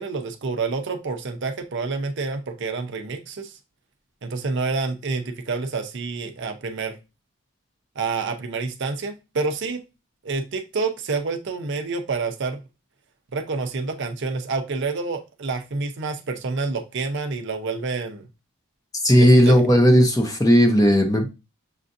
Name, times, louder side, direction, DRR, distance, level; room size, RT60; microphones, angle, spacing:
voice 1, 0.0-3.6 4.2-7.0 8.0-9.8 10.2-12.6 13.3-18.2 19.2-19.6, right 4 dB, 55° right, 0.6 m, -28 dB
voice 2, 19.0-21.3, equal, 15° left, 0.7 m, -15 dB
6.5 x 2.5 x 2.6 m
head